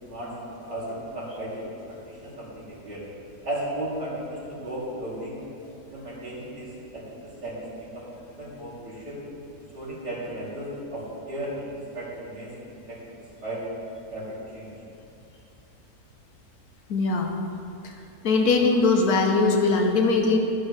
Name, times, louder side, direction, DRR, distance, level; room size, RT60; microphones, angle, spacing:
voice 1, 0.0-0.3 0.6-3.0 3.4-5.4 5.9-7.0 7.4-7.6 7.9-9.2 9.7-13.0 13.4-13.6 14.1-14.7, right 1 dB, 85° right, -8 dB, 3.5 m, -35 dB
voice 2, 16.9-17.3 17.8-17.9 18.2-20.4, left 3 dB, 70° left, 2 dB, 1.4 m, -21 dB
13.0 x 11.0 x 3.2 m, 2.7 s
omnidirectional pair, 1.7 m